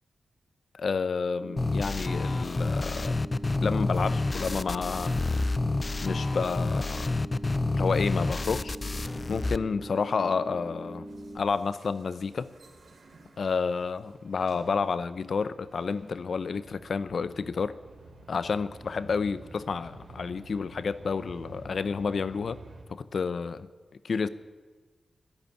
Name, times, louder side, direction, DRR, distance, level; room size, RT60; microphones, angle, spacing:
voice 1, 0.7-3.2 3.6-5.1 6.0-7.1 7.7-8.7 9.3-11.1 11.3-12.5 13.4-17.8 18.3-22.6 22.9-23.7 24.0-24.3, left 5 dB, 70° left, 0.7 m, -30 dB
sound 1, 1.4-11.4, right 1 dB, 15° right, 3.2 m, -42 dB
sound 2, 1.6-9.6, left 2 dB, 35° left, 0.5 m, -29 dB
sound 3, 9.9-22.8, right 2 dB, 70° right, 2.9 m, -51 dB
12.5 x 11.5 x 9.6 m
cardioid pair, 60°, 0 cm